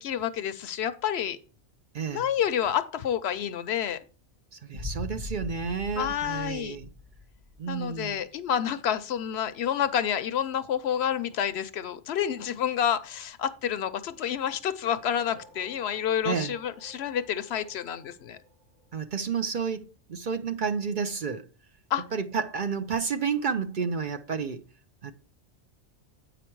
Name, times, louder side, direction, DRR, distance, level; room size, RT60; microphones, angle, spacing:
voice 1, 0.0-1.4 2.1-4.0 6.0-6.8 7.7-18.4 21.9-22.0, left 9 dB, 70° left, 0.8 m, -29 dB
voice 2, 4.5-6.9 7.6-8.2 16.2-16.5 18.9-19.8 20.1-21.4 22.1-24.6 25.0-25.1, right 6 dB, 50° right, 0.7 m, -30 dB
sound 1, 4.7-7.7, left 2 dB, 20° right, 0.8 m, -40 dB
sound 2, 14.8-19.4, equal, 70° right, 2.6 m, -55 dB
8.6 x 5.0 x 4.5 m
omnidirectional pair, 1.2 m